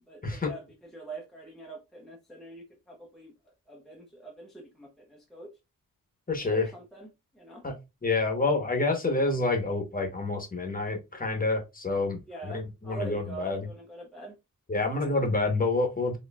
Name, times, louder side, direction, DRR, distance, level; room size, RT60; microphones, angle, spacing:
voice 1, 0.0-3.3 3.7-5.5 6.4-7.1 7.3-7.6 12.3-14.4, right 2 dB, ahead, 0.7 m, -44 dB
voice 2, 6.3-6.7 7.6-7.7 8.0-13.7 14.7-16.2, left 3 dB, 25° left, 1.0 m, -28 dB
4.2 x 3.1 x 2.3 m
wide cardioid pair, 155°, 33 cm